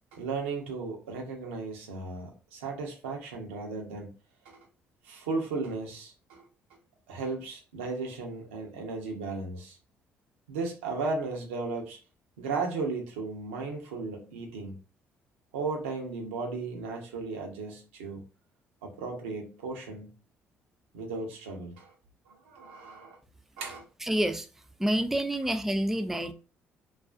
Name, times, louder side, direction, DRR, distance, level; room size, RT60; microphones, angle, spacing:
voice 1, 0.1-4.1 4.4-4.6 5.0-6.5 7.1-9.8 10.5-12.0 12.4-14.8 15.5-18.2 18.8-20.1 20.9-21.9 22.3-23.2 23.6-23.8, right 4 dB, 85° right, 0.6 m, -35 dB
voice 2, 24.0-24.5 24.8-26.3, right 1 dB, 5° right, 0.3 m, -28 dB
2.4 x 2.3 x 2.3 m
hypercardioid pair, 50°, 6 cm